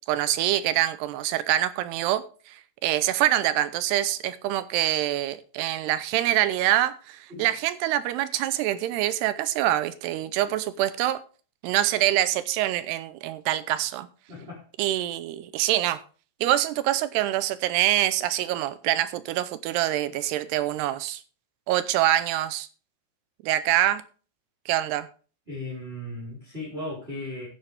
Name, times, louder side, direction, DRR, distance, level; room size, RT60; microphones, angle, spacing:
voice 1, 0.1-11.2 11.6-14.1 14.8-16.0 16.4-21.2 21.7-22.7 23.4-24.0 24.7-25.1, right 13 dB, 80° right, 13 dB, 2.7 m, -25 dB
voice 2, 14.3-14.6 25.5-27.5, left 1 dB, 15° right, -7 dB, 4.7 m, -36 dB
13.0 x 9.1 x 3.4 m, 0.38 s
omnidirectional pair, 4.9 m